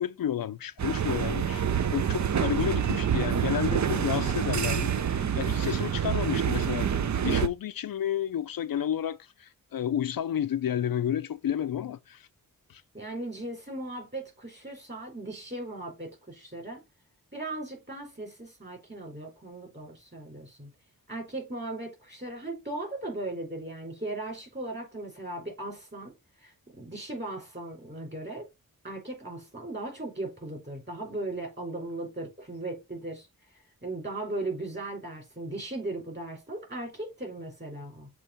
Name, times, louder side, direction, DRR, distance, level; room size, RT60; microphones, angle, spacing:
voice 1, 0.0-1.6 1.9-6.9 7.2-12.2 12.7-12.8, left 10 dB, 70° left, 0.5 m, -31 dB
sound 1, 0.8-7.5, right 8 dB, 50° right, 0.6 m, -27 dB
voice 2, 12.9-16.8 17.3-20.7 21.1-26.1 26.4-28.5 28.8-33.3 33.8-38.1, right 2 dB, 30° right, 4.1 m, -37 dB
6.8 x 3.1 x 5.8 m
wide cardioid pair, 90°, 36 cm